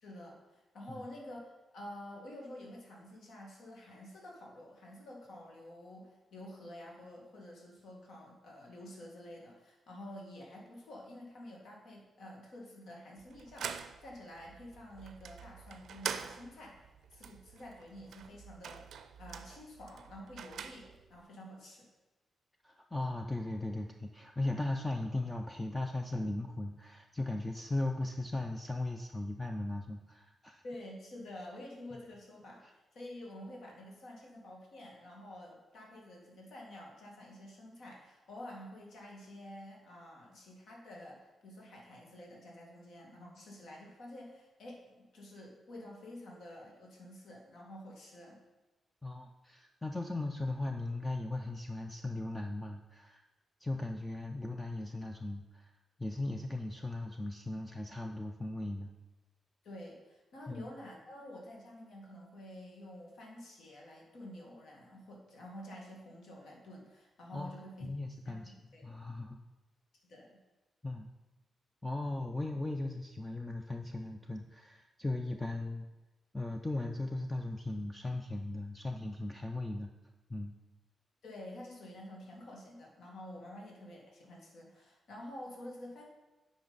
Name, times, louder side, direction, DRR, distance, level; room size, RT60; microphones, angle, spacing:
voice 1, 0.0-18.8 19.2-21.9 30.6-48.4 59.6-67.9 68.2-68.9 70.0-70.4 81.2-86.0, left 1 dB, 65° left, -1 dB, 1.7 m, -49 dB
sound 1, 13.2-21.2, right 7 dB, 70° right, 0.4 m, -45 dB
voice 2, 22.6-30.6 49.0-53.2 53.6-55.7 56.0-58.9 60.5-60.7 67.3-67.5 67.8-68.5 68.8-69.4 70.8-71.1 71.8-75.8 76.3-79.9 80.3-80.5, left 2 dB, 10° left, 4 dB, 0.4 m, -37 dB
8.9 x 5.1 x 3.9 m, 1.1 s
wide cardioid pair, 155°, 0 cm